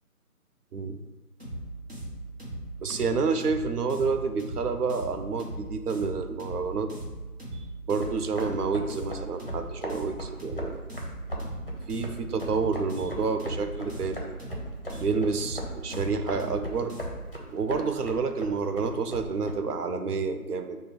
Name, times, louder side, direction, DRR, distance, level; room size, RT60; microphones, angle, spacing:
sound 1, 1.4-17.3, right 1 dB, 40° right, 1.0 m, -38 dB
voice 1, 2.8-6.9 7.5-10.8 11.9-14.4 14.9-16.9 17.5-20.8, right 4 dB, 80° right, 8 dB, 0.5 m, -29 dB
sound 2, 8.0-19.5, equal, 40° left, 0.6 m, -39 dB
5.6 x 2.2 x 3.2 m, 1.3 s
figure-of-eight pair, 160°, 46 cm